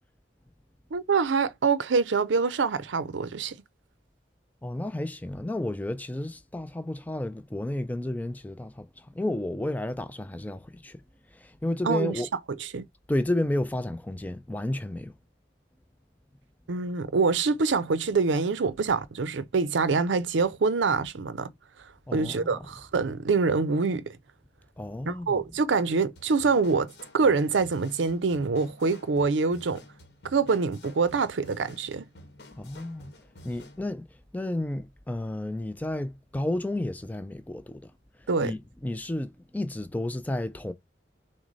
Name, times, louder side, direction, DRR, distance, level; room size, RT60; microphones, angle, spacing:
voice 1, 0.9-3.6 11.8-12.1 12.6-12.9 16.7-21.5 22.1-24.2 25.1-29.8 30.3-32.0 38.3-38.5, right 4 dB, 85° right, 0.5 m, -25 dB
voice 2, 4.6-11.0 11.3-12.3 13.1-15.1 22.1-22.6 24.8-25.4 32.5-33.1 33.4-34.0 34.3-37.9 38.4-40.7, left 1 dB, 10° left, 0.3 m, -32 dB
sound 1, 26.2-33.8, left 1 dB, 60° left, 1.1 m, -50 dB
6.0 x 2.1 x 3.9 m
head